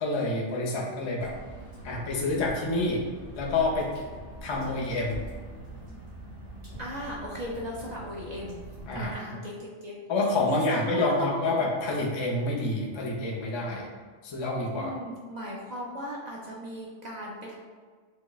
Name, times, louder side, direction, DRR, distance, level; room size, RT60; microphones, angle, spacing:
voice 1, 0.0-1.3 1.8-3.0 3.3-3.9 4.4-5.2 8.9-9.1 10.1-13.9 14.2-14.9, left 2 dB, 35° left, -3 dB, 0.4 m, -28 dB
Water / Drip, 1.2-9.1, right 2 dB, 90° right, 2.0 m, -43 dB
voice 2, 6.8-8.6 8.9-10.0 10.5-11.5 14.7-17.5, equal, 50° right, -3 dB, 0.5 m, -37 dB
6.2 x 2.1 x 2.3 m, 1.5 s
omnidirectional pair, 1.2 m